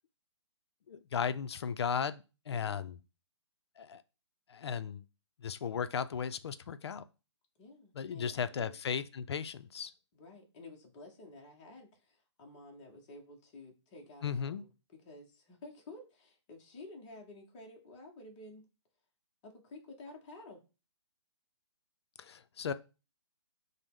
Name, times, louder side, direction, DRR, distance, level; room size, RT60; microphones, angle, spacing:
voice 1, 0.9-3.0 3.8-4.0 4.5-5.0 5.4-7.0 8.0-9.9 14.2-14.6 22.2-22.7, left 7 dB, 65° left, 0.4 m, -36 dB
voice 2, 2.5-2.8 7.6-8.8 10.1-18.6 19.4-20.6, left 2 dB, 20° left, 0.6 m, -52 dB
5.2 x 2.0 x 3.5 m
hypercardioid pair, 165°, 15 cm